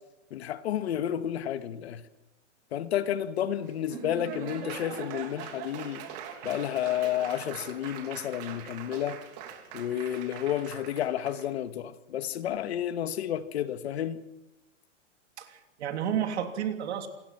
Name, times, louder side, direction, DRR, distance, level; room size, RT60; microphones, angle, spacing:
voice 1, 0.3-2.0 2.7-6.0 6.4-9.2 9.7-14.2, left 11 dB, 60° left, 1.7 m, -31 dB
Laughter / Applause, 3.6-11.5, right 8 dB, 35° right, 3.1 m, -42 dB
voice 2, 15.4-17.1, right 9 dB, 65° right, 3.2 m, -31 dB
27.5 x 21.0 x 6.0 m
hypercardioid pair, 165°, 36 cm